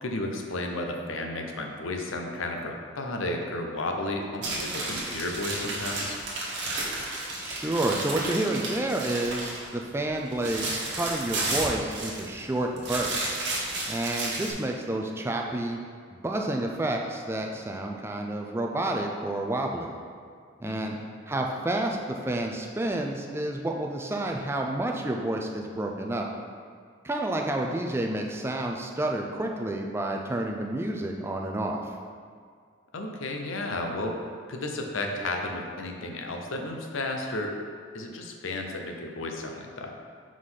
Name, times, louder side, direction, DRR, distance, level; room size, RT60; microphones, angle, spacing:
voice 1, 0.0-6.2 20.6-21.0 32.9-34.2 34.5-37.5 37.9-39.9, left 2 dB, 85° left, 2 dB, 0.7 m, -33 dB
sound 1, 4.4-9.7 10.0-12.4 12.8-14.5, right 2 dB, 60° right, 1.3 m, -32 dB
voice 2, 7.4-13.5 13.9-15.8 16.2-19.9 20.6-20.9 21.3-26.3 27.0-31.9, right 1 dB, 10° right, 1 dB, 0.3 m, -30 dB
4.9 x 3.9 x 5.6 m, 2.1 s
head